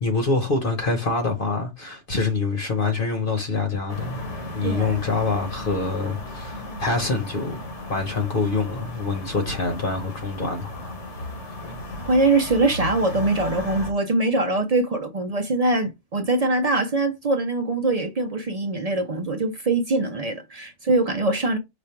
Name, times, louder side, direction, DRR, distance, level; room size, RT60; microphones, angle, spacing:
voice 1, 0.0-4.2 4.5-7.6 7.9-11.4, left 3 dB, 50° left, 1.1 m, -26 dB
sound 1, 3.9-13.9, left 1 dB, 70° left, 1.5 m, -35 dB
voice 2, 4.6-4.9 12.1-21.6, right 2 dB, 45° right, 0.5 m, -23 dB
5.1 x 2.3 x 4.4 m
omnidirectional pair, 1.2 m